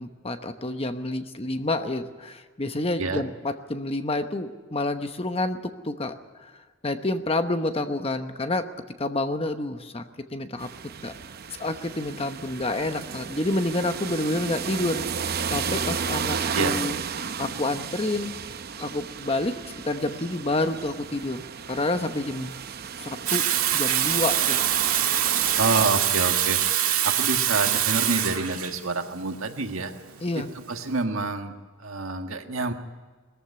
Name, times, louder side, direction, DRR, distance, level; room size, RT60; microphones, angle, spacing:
voice 1, 0.0-5.6 5.8-6.5 6.8-8.7 9.0-10.0 10.3-10.7 11.0-11.1 11.6-15.1 15.5-18.3 18.7-19.5 19.8-22.5 23.0-23.5 23.7-24.6 30.2-30.5, left 2 dB, 25° left, 8 dB, 1.0 m, -28 dB
sound 1, 10.6-25.9, right 6 dB, 45° right, 0.7 m, -33 dB
Water tap faucet / Sink (filling or washing), 23.3-30.9, right 11 dB, 90° right, 1.8 m, -24 dB
voice 2, 25.6-26.6 27.0-29.9 30.3-32.7, right 3 dB, 70° right, 5 dB, 1.6 m, -28 dB
19.5 x 14.5 x 9.6 m, 1.5 s
head